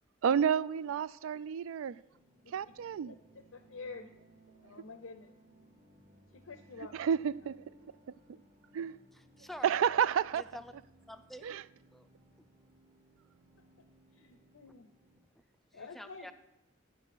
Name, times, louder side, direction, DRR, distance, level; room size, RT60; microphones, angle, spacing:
voice 1, 0.2-2.0 2.5-3.1 6.9-7.9 8.7-9.0 9.6-10.4 11.4-11.6, right 8 dB, 85° right, 0.3 m, -30 dB
sound 1, 2.1-15.2, right 1 dB, 30° right, 1.0 m, -63 dB
voice 2, 3.1-4.1 4.6-5.4 6.3-7.1 14.1-14.9 15.7-16.3, left 4 dB, 90° left, 0.6 m, -48 dB
voice 3, 9.1-9.8 10.4-10.7 11.1-11.5 11.9-12.1 15.7-16.3, left 1 dB, ahead, 0.4 m, -48 dB
9.5 x 6.2 x 5.8 m
head